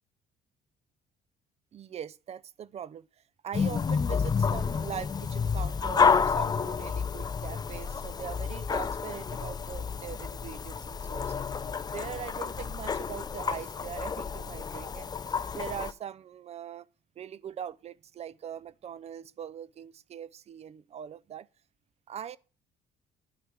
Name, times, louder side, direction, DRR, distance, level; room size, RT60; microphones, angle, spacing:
voice 1, 1.7-3.1 3.4-11.5 11.9-15.1 15.5-16.9 17.2-21.5 22.1-22.4, right 9 dB, 40° right, 0.4 m, -41 dB
sound 1, 3.5-15.9, left 6 dB, 25° left, 0.4 m, -30 dB
10.0 x 4.9 x 5.0 m
cardioid pair, 110°, 17 cm